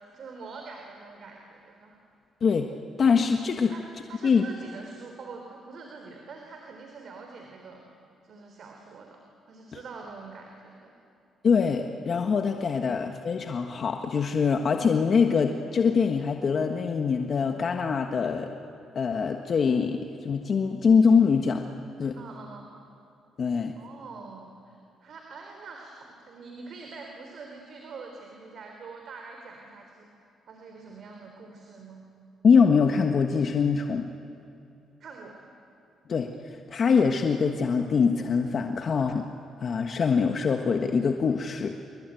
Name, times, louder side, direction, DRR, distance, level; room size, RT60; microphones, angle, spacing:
voice 1, 0.1-2.0 3.7-7.8 8.2-9.2 9.5-10.9 22.2-22.7 23.8-30.1 30.5-32.0 35.0-35.4, right 4 dB, 60° right, 3 dB, 3.8 m, -44 dB
voice 2, 3.0-3.7 4.2-4.4 9.7-9.8 11.4-18.5 18.9-21.6 22.0-22.2 23.4-23.8 32.4-34.1 36.1-39.3 39.6-41.8, left 5 dB, 50° left, 4 dB, 1.5 m, -23 dB
28.0 x 23.0 x 9.2 m, 2.7 s
cardioid pair, 90°, 0 cm